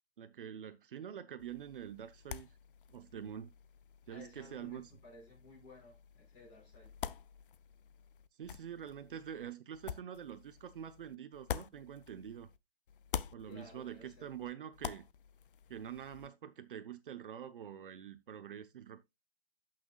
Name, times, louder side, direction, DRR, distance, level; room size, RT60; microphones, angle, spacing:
voice 1, 0.2-2.5 2.9-3.5 4.1-4.9 8.4-12.5 13.3-15.1 15.7-19.0, right 9 dB, 55° right, 0.9 m, -46 dB
sound 1, 1.4-12.6 12.9-16.3, left 9 dB, 55° left, 0.6 m, -47 dB
voice 2, 4.1-6.9 13.4-14.3, left 3 dB, 20° left, 5.3 m, -56 dB
16.5 x 6.0 x 2.3 m
hypercardioid pair, 165°, 31 cm